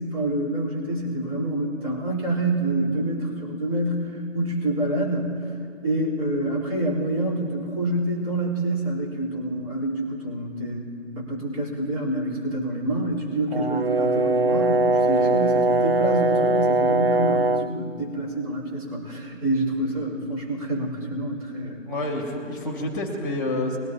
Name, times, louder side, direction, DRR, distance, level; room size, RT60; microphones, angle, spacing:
voice 1, 0.0-5.3 5.8-10.9 11.2-21.9, right 1 dB, 30° right, -7 dB, 3.9 m, -27 dB
Brass instrument, 13.5-17.8, right 2 dB, 50° right, 0.4 m, -21 dB
voice 2, 15.0-15.3 21.8-23.8, left 1 dB, 15° left, 2 dB, 2.2 m, -29 dB
22.0 x 12.0 x 2.9 m, 2.4 s
figure-of-eight pair, 155°, 38 cm